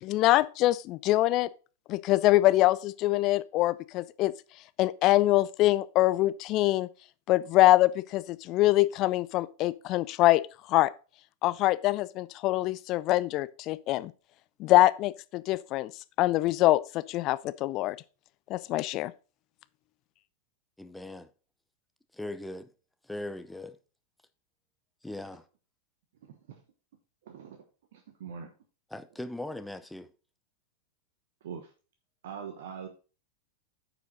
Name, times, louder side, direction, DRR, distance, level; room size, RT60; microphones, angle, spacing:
voice 1, 0.0-1.5 1.9-4.3 4.8-6.9 7.3-10.4 10.7-10.9 11.4-14.1 14.6-15.9 16.2-18.0 18.5-19.1, left 17 dB, 40° left, 0.4 m, -24 dB
voice 2, 20.8-21.3 22.1-22.7 23.0-23.8 25.0-25.4 28.9-30.1, left 1 dB, 5° left, 0.7 m, -39 dB
voice 3, 27.3-27.6 27.9-28.5 31.4-31.7 32.2-32.9, right 7 dB, 55° right, 1.0 m, -42 dB
9.3 x 5.1 x 4.0 m
figure-of-eight pair, 90°, 0 cm